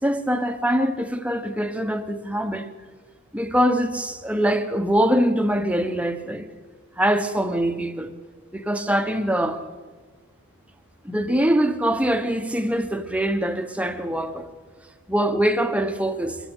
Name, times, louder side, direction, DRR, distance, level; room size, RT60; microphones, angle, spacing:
voice 1, 0.0-2.7 3.3-6.5 7.0-8.1 8.5-9.6 11.0-14.5 15.1-16.4, equal, 5° right, 1.2 m, -23 dB
24.0 x 15.0 x 8.3 m
head